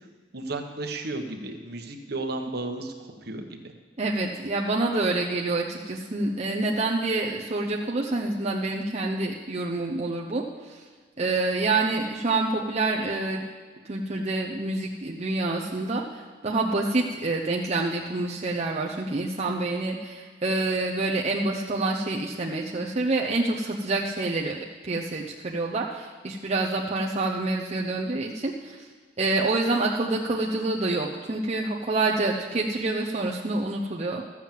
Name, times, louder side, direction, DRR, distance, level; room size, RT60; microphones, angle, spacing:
voice 1, 0.3-3.7, right 2 dB, 55° right, 5 dB, 1.2 m, -34 dB
voice 2, 4.0-10.4 11.2-13.4 13.9-16.0 16.4-24.6 24.8-28.8 29.2-34.2, right 2 dB, 35° right, -1 dB, 0.8 m, -27 dB
13.5 x 7.4 x 7.6 m, 1.5 s
head